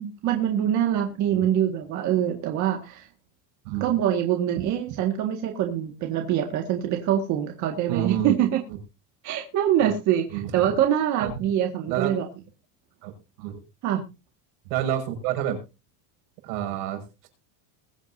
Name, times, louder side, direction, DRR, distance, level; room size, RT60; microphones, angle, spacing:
voice 1, 0.0-3.1 3.8-8.6 9.2-12.3 13.8-14.0, right 10 dB, 40° right, 3 dB, 1.9 m, -24 dB
voice 2, 7.9-8.3 9.8-9.9 10.3-10.7 11.2-11.3 11.9-12.2 13.0-13.6 14.7-15.6 16.4-17.3, right 11 dB, 75° right, 4 dB, 5.9 m, -29 dB
22.0 x 8.5 x 2.7 m, 0.29 s
cardioid pair, 175°, 46 cm